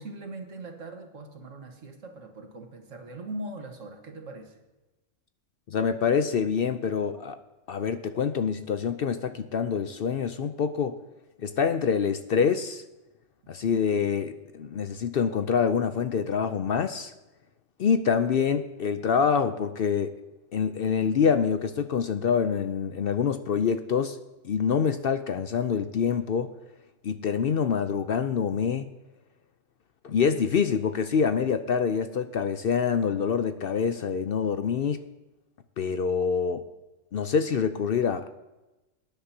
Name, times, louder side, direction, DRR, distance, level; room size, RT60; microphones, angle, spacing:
voice 1, 0.0-4.6, right 2 dB, 80° right, 4 dB, 1.8 m, -41 dB
voice 2, 5.7-7.4 7.7-11.0 11.4-12.8 13.5-17.1 17.8-20.1 20.5-24.2 24.4-26.5 27.0-28.9 30.0-35.0 35.8-36.6 37.1-38.3, left 6 dB, 60° left, 10 dB, 0.7 m, -26 dB
19.0 x 10.5 x 2.8 m, 1.0 s
omnidirectional pair, 1.3 m